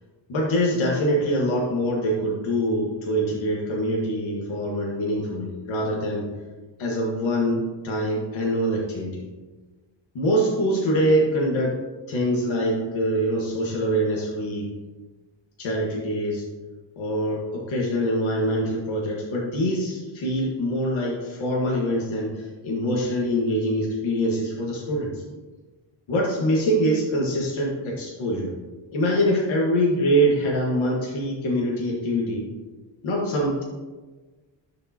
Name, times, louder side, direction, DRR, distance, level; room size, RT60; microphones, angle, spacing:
voice 1, 0.3-6.3 6.8-9.2 10.1-11.7 12.1-14.7 15.6-16.4 17.0-25.2 26.1-28.5 28.9-32.4 33.0-33.6, equal, 75° left, -3 dB, 1.7 m, -24 dB
12.5 x 5.1 x 2.9 m, 1.3 s
wide cardioid pair, 155°, 47 cm